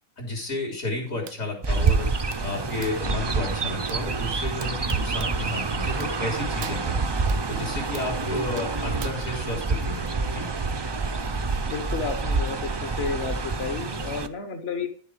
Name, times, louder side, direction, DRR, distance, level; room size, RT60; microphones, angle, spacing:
voice 1, 0.2-10.5, left 2 dB, 75° left, 1 dB, 3.7 m, -32 dB
sound 1, 1.3-1.4 1.9-3.1 3.9-4.0 4.6-5.3 5.9-6.3 6.6-7.4 7.9-8.1 8.6-9.1, right 9 dB, 80° right, 1.1 m, -42 dB
Chirp tweet, 1.6-14.3, right 4 dB, 45° right, 0.3 m, -27 dB
voice 2, 8.3-8.7 11.7-14.9, left 5 dB, 55° left, 6 dB, 1.2 m, -32 dB
11.0 x 7.1 x 5.0 m, 0.42 s
omnidirectional pair, 1.4 m